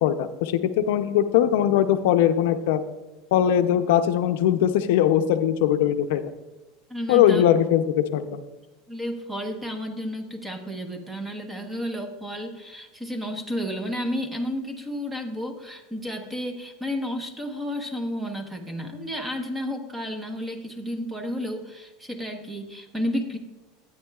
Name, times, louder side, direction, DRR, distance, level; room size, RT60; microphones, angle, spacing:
voice 1, 0.0-2.8 3.3-6.2 7.1-8.4, left 10 dB, 70° left, 9 dB, 0.5 m, -21 dB
voice 2, 6.9-7.4 8.9-23.4, equal, 10° right, 5 dB, 1.0 m, -32 dB
13.0 x 9.1 x 2.4 m, 1.1 s
supercardioid pair, 150°, 0 cm